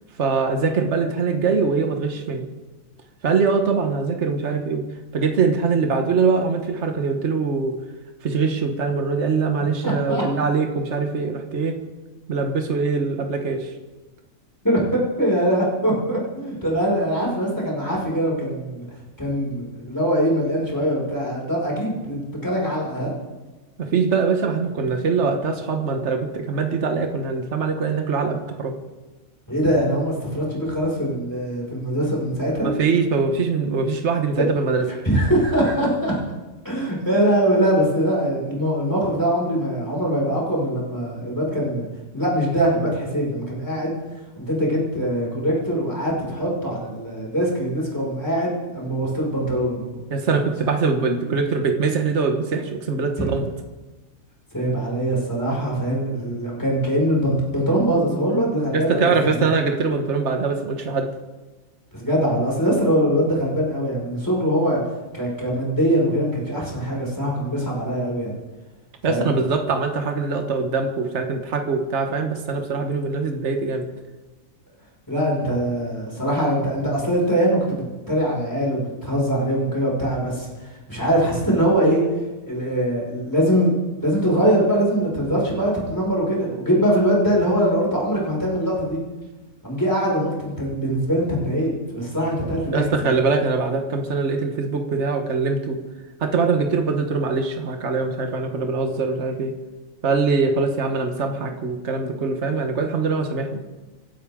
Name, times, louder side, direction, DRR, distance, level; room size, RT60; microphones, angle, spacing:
voice 1, 0.2-2.5 3.2-4.8 5.1-7.8 8.2-11.8 12.3-13.7 23.8-28.8 32.6-34.9 50.1-53.4 58.7-61.1 69.0-73.9 92.7-95.8 96.2-99.6 100.0-103.6, right 4 dB, 55° right, 4 dB, 1.6 m, -23 dB
voice 2, 9.8-10.2 14.6-18.9 19.2-23.2 29.5-32.7 35.0-36.2 36.6-41.9 42.1-44.0 44.4-49.8 51.2-51.4 53.2-53.3 54.5-59.5 62.0-64.8 65.1-68.4 69.1-69.3 75.1-80.5 80.9-82.0 82.5-83.7 84.0-89.0 89.6-93.1, equal, 15° left, -4 dB, 5.7 m, -22 dB
28.0 x 12.0 x 3.7 m, 1.2 s
omnidirectional pair, 1.5 m